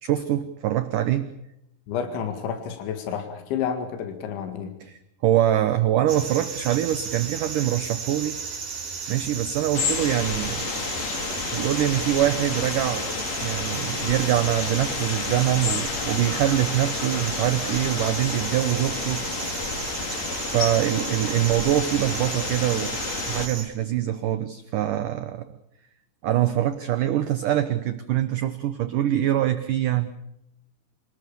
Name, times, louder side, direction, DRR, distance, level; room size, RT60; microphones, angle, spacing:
voice 1, 0.0-1.3 4.8-8.4 9.1-10.7 11.5-13.1 13.4-19.3 20.1-25.5 26.2-30.1, right 12 dB, 85° right, 11 dB, 1.8 m, -24 dB
voice 2, 1.9-4.7, left 7 dB, 90° left, 7 dB, 4.3 m, -30 dB
sound 1, 6.1-23.7, right 5 dB, 55° right, 5.1 m, -34 dB
sound 2, 9.7-23.5, left 5 dB, 45° left, 3.0 m, -30 dB
27.5 x 19.5 x 7.0 m, 0.82 s
omnidirectional pair, 5.2 m